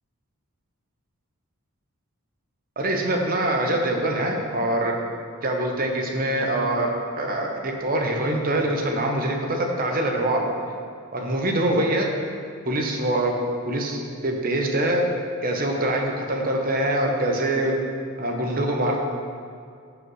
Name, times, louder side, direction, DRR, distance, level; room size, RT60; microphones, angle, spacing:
voice 1, 2.8-4.9 5.4-6.9 7.2-10.5 11.1-12.1 12.7-13.3 13.6-15.0 15.4-17.7 18.2-19.0, right 1 dB, 40° right, 1 dB, 1.0 m, -24 dB
14.0 x 5.0 x 3.2 m, 2.3 s
head